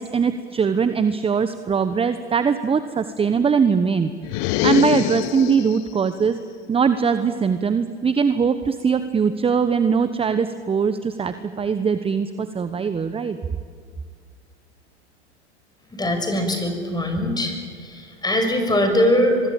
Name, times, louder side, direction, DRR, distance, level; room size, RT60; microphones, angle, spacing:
voice 1, 0.0-4.1 4.6-6.4 6.7-13.4, right 6 dB, 15° right, 11 dB, 1.0 m, -21 dB
sound 1, 4.2-5.9, left 16 dB, 50° left, 0.9 m, -23 dB
voice 2, 15.9-17.5 17.8-19.5, left 1 dB, 10° left, 5 dB, 6.2 m, -21 dB
23.5 x 23.0 x 8.8 m, 2.1 s
hypercardioid pair, 95°, 34 cm